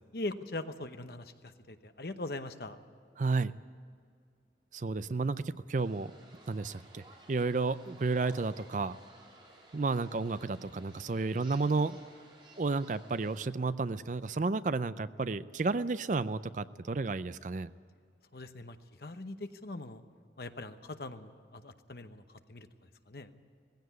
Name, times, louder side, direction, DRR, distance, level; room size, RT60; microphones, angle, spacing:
voice 1, 0.1-2.8 18.3-20.0 20.4-22.7 23.1-23.3, left 2 dB, 60° left, 9 dB, 1.0 m, -41 dB
voice 2, 3.2-3.5 4.7-6.1 6.5-9.0 9.7-12.0 12.6-17.7, right 3 dB, 45° right, 15 dB, 0.5 m, -32 dB
sound 1, 5.8-13.5, right 2 dB, 25° right, 2.9 m, -56 dB
18.5 x 16.0 x 9.4 m, 2.2 s
head